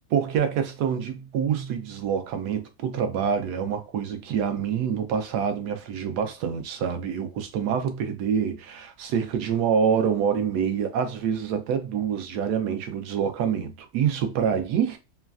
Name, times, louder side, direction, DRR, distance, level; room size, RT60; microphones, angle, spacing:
voice 1, 0.1-15.0, right 7 dB, 90° right, 1.2 m, -26 dB
3.1 x 2.3 x 2.3 m
omnidirectional pair, 1.7 m